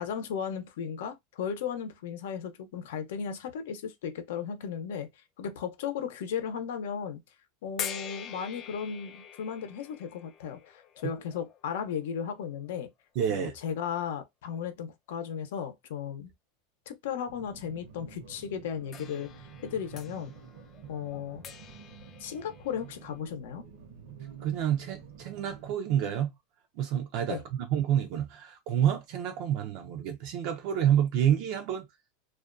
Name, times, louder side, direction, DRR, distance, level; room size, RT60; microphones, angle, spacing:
voice 1, 0.0-5.1 5.4-7.2 7.6-12.9 13.3-16.3 16.9-20.3 20.9-21.4 22.2-23.6 27.3-27.4, left 7 dB, 80° left, 0.7 m, -35 dB
sound 1, 7.8-12.8 13.7-13.8 18.9-23.2, left 8 dB, 30° left, 0.4 m, -44 dB
voice 2, 13.2-13.5 24.4-26.3 26.8-31.9, right 10 dB, 55° right, 0.5 m, -28 dB
sound 2, 17.3-25.7, right 7 dB, 70° right, 0.9 m, -49 dB
2.4 x 2.2 x 2.5 m
supercardioid pair, 140°, 0 cm